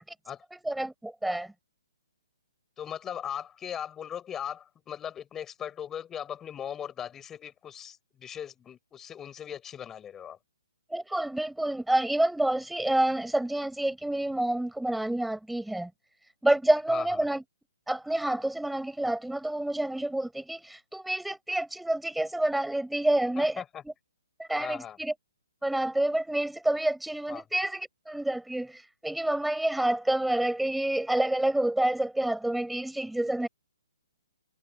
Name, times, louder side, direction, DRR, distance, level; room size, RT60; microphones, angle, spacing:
voice 1, 0.6-1.5 10.9-15.9 16.4-17.4 17.9-23.6 24.4-25.1 25.6-33.5, right 1 dB, ahead, 5.1 m, -28 dB
voice 2, 2.8-10.4 16.9-17.1 23.4-23.8 24.5-25.0 27.3-27.4, left 9 dB, 15° left, 6.5 m, -39 dB
hypercardioid pair, 145°, 2 cm